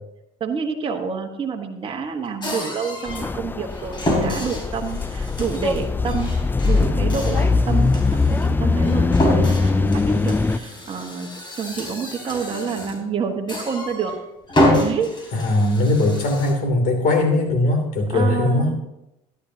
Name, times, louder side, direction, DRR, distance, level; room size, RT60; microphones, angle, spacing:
voice 1, 0.4-6.3 6.6-11.3 11.6-14.1 14.8-15.1 18.1-18.8, right 6 dB, 30° right, 2 dB, 1.5 m, -28 dB
sound 1, 2.4-3.3 3.7-13.1 13.5-14.2 14.5-16.5, left 1 dB, 30° left, 3.9 m, -27 dB
sound 2, 3.1-10.6, left 3 dB, 10° left, 0.4 m, -21 dB
voice 2, 15.3-18.7, left 2 dB, 55° left, 3 dB, 3.0 m, -20 dB
13.5 x 11.0 x 2.9 m, 0.88 s
supercardioid pair, 85°, 17 cm